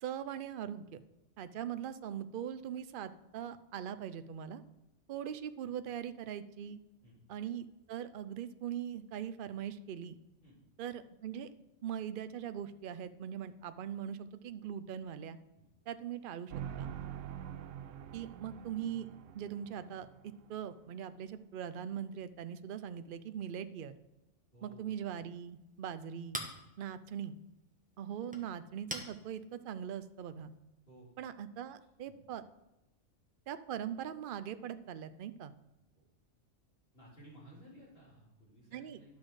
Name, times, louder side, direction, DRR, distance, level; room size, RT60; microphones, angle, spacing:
voice 1, 0.0-1.0 1.4-4.6 5.1-6.8 7.3-10.2 10.8-11.5 11.8-15.4 15.9-16.9 18.1-23.9 24.6-26.4 26.8-27.4 28.0-30.5 31.2-32.4 33.5-35.5 38.7-39.2, right 9 dB, 55° right, 12 dB, 0.6 m, -41 dB
sound 1, 16.5-20.6, right 9 dB, 80° right, 0.9 m, -45 dB
voice 2, 24.5-24.9 30.9-31.1 32.1-32.2 36.0-36.1 36.9-39.2, right 1 dB, 50° left, -9 dB, 3.9 m, -57 dB
Chink clink, 25.1-30.6, equal, 5° right, 1.1 m, -48 dB
11.5 x 6.2 x 4.8 m, 0.98 s
omnidirectional pair, 1.3 m